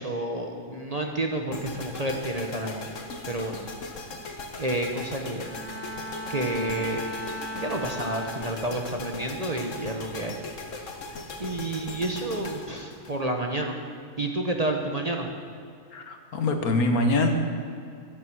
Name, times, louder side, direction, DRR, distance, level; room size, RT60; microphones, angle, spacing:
voice 1, 0.0-3.0 3.3-3.5 4.6-5.5 6.3-7.0 7.6-10.4 11.4-13.8 14.2-15.3, right 1 dB, 30° right, 2 dB, 1.0 m, -30 dB
sound 1, 1.5-13.7, left 3 dB, 55° left, 1.7 m, -39 dB
Bowed string instrument, 5.3-8.9 9.4-9.8, equal, 5° left, 2.8 m, -38 dB
voice 2, 15.9-17.3, left 2 dB, 70° left, 5 dB, 1.8 m, -24 dB
14.5 x 11.5 x 6.2 m, 2.4 s
omnidirectional pair, 1.6 m